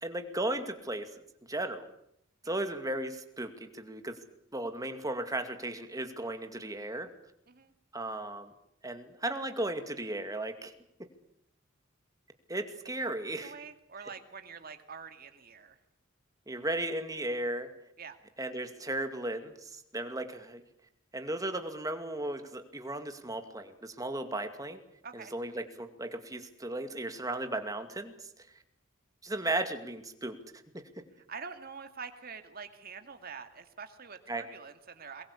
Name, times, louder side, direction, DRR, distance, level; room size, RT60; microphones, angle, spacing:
voice 1, 0.0-1.1 1.5-1.9 2.5-4.2 4.5-7.1 7.9-8.5 8.8-10.7 12.5-13.5 16.5-17.7 18.4-20.6 21.1-24.8 25.1-28.1 29.2-30.4 30.7-31.0 34.3-34.5, right 1 dB, 20° right, 7 dB, 2.3 m, -35 dB
voice 2, 13.4-15.8 18.0-18.2 25.0-25.3 31.3-35.2, right 5 dB, 50° right, 7 dB, 2.4 m, -45 dB
23.0 x 21.5 x 8.4 m, 0.75 s
head